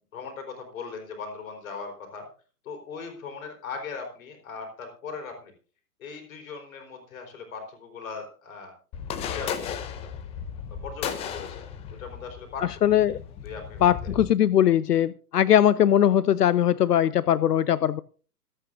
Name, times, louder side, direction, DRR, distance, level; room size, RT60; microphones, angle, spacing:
voice 1, 0.1-2.3 2.6-5.5 6.0-8.7 9.3-9.8 10.7-11.7 12.0-12.6 13.4-13.9, left 5 dB, 55° left, 3 dB, 4.6 m, -39 dB
sound 1, 8.9-14.3, left 8 dB, 15° left, 0.7 m, -35 dB
voice 2, 12.6-13.2 13.8-18.0, left 10 dB, 70° left, 18 dB, 0.6 m, -20 dB
26.0 x 8.8 x 2.6 m, 0.38 s
figure-of-eight pair, 120°, 48 cm